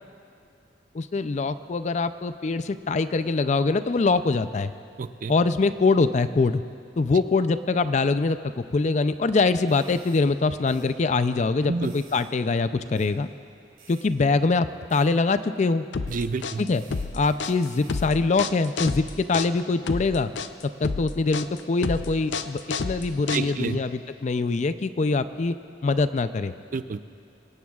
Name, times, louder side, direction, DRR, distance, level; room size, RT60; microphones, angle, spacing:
voice 1, 0.9-4.7 5.3-6.6 7.0-13.3 13.9-15.9 16.6-16.8 17.1-20.3 20.6-25.6 25.8-26.5, left 3 dB, 40° left, 12 dB, 0.4 m, -23 dB
voice 2, 5.0-5.3 11.7-11.9 16.1-16.6 23.3-23.8 26.7-27.0, right 4 dB, 45° right, 12 dB, 0.4 m, -29 dB
sound 1, 9.7-10.2 10.7-10.9 11.8-12.3 13.0-13.1 13.8-14.1 14.9-15.1 16.1-16.2 16.7-18.1, right 6 dB, 70° right, 3.4 m, -52 dB
sound 2, 15.9-23.8, left 4 dB, 85° left, 0.6 m, -30 dB
23.0 x 17.5 x 2.4 m, 2.5 s
head